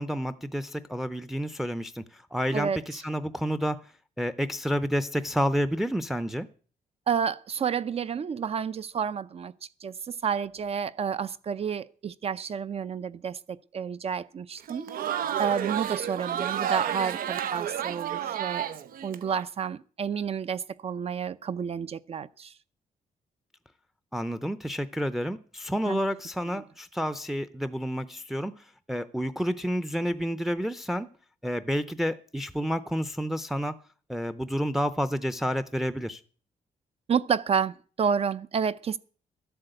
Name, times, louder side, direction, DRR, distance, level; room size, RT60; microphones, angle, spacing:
voice 1, 0.0-3.8 4.2-6.5 24.1-31.1 31.4-33.8 34.1-36.2, equal, ahead, 0.6 m, -30 dB
voice 2, 7.1-9.5 9.8-14.9 15.4-18.7 19.0-22.5 25.9-26.0 37.1-39.0, right 7 dB, 45° right, 0.6 m, -30 dB
Crowd, 14.6-19.4, right 10 dB, 85° right, 0.9 m, -31 dB
13.0 x 7.9 x 7.8 m
wide cardioid pair, 140°, 14 cm